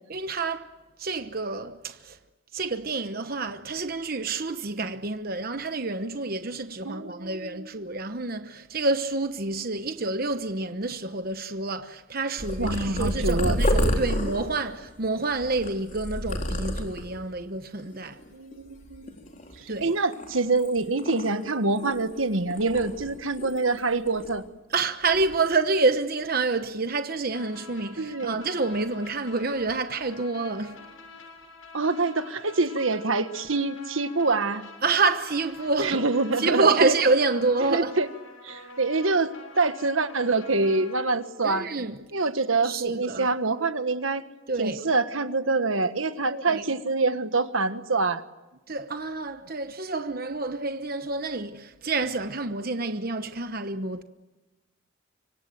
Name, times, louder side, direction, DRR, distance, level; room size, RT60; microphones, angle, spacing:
voice 1, 0.1-0.7 1.0-2.2 2.5-18.2 19.7-19.9 24.7-30.8 34.8-36.0 36.4-37.9 41.4-42.0 42.6-43.3 44.5-44.8 46.3-46.6 48.7-54.0, right 3 dB, 45° right, 1.1 m, -28 dB
voice 2, 6.8-7.9 12.6-13.6 18.3-19.1 19.8-24.4 28.0-28.4 31.7-34.6 35.8-36.9 37.7-38.1 38.4-39.3 39.6-41.7 42.1-44.2 44.6-48.2, right 3 dB, 75° right, 1.5 m, -26 dB
Purr, 12.4-17.2 17.8-18.3 18.5-19.7 20.1-22.2 22.5-23.8 24.1-24.4 25.0-25.3, equal, 35° left, 4.0 m, -30 dB
sound 1, 27.3-41.0, left 3 dB, 85° left, 7.0 m, -47 dB
26.0 x 24.5 x 7.9 m
head